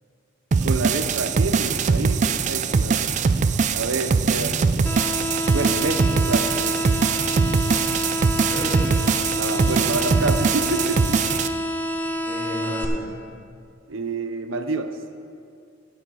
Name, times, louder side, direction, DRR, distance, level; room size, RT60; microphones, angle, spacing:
sound 1, 0.5-11.5, right 5 dB, 35° right, 0.3 m, -22 dB
voice 1, 0.6-3.1 3.7-4.5 5.5-6.8 9.3-11.2 13.9-15.0, right 3 dB, 80° right, 9 dB, 0.7 m, -28 dB
sound 2, 4.9-12.9, equal, 10° left, 0.6 m, -28 dB
voice 2, 8.4-9.1 9.6-9.8 11.9-13.1, left 1 dB, 25° left, -6 dB, 2.7 m, -34 dB
15.0 x 6.5 x 4.7 m, 2.4 s
head